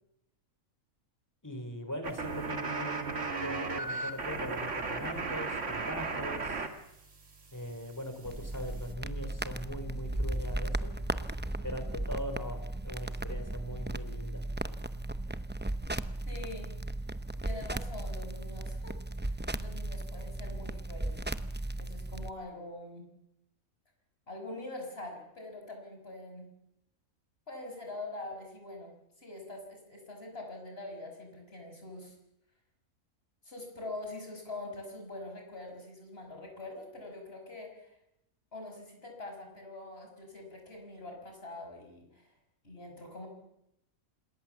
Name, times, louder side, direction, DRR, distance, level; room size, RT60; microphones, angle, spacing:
voice 1, 1.4-6.7 7.5-11.0 11.6-14.5, equal, 10° left, 7 dB, 3.5 m, -41 dB
sound 1, 2.0-6.7 6.9-8.9, right 4 dB, 55° right, 2.3 m, -36 dB
sound 2, 8.2-22.3, right 1 dB, 15° right, 0.4 m, -36 dB
voice 2, 16.3-16.7 17.4-21.2 21.8-23.1 24.3-26.5 27.5-32.2 33.4-38.0 38.5-42.3 42.6-43.3, left 2 dB, 40° left, 2 dB, 6.1 m, -44 dB
27.0 x 20.5 x 7.2 m, 0.82 s
omnidirectional pair, 1.5 m